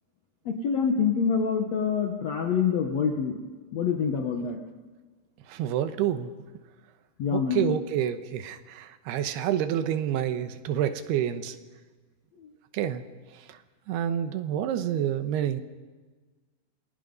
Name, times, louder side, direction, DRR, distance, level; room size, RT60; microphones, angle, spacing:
voice 1, 0.4-3.4 3.7-4.6 7.2-7.8, left 6 dB, 85° left, 3 dB, 1.5 m, -26 dB
voice 2, 5.5-6.3 7.3-11.6 12.7-13.0 13.9-15.6, right 10 dB, 75° right, 9 dB, 2.9 m, -28 dB
28.0 x 20.0 x 5.3 m, 1.4 s
omnidirectional pair, 5.0 m